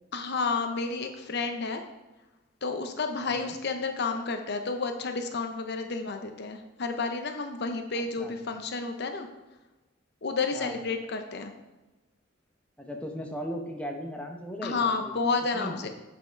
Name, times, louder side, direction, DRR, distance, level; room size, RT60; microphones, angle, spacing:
voice 1, 0.1-1.8 2.6-9.3 10.2-11.5 14.6-15.9, left 4 dB, 55° left, 6 dB, 0.7 m, -31 dB
voice 2, 3.2-3.5 7.9-8.5 10.5-10.8 12.8-15.2 15.5-15.9, equal, 5° left, 2 dB, 0.8 m, -38 dB
7.4 x 5.8 x 4.5 m, 1.1 s
head